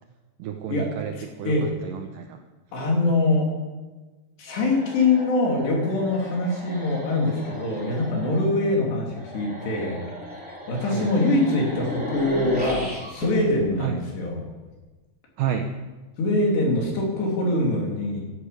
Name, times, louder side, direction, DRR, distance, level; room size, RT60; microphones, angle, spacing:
voice 1, 0.4-2.4 10.8-11.1 13.8-14.0 15.4-15.7, right 9 dB, 85° right, 5 dB, 1.9 m, -30 dB
voice 2, 1.2-1.7 2.7-3.5 4.4-10.0 10.7-14.4 16.2-18.2, left 2 dB, 75° left, -1 dB, 5.3 m, -23 dB
sound 1, 4.5-14.7, equal, ahead, 3.3 m, -36 dB
11.5 x 11.5 x 8.5 m, 1.2 s
omnidirectional pair, 4.9 m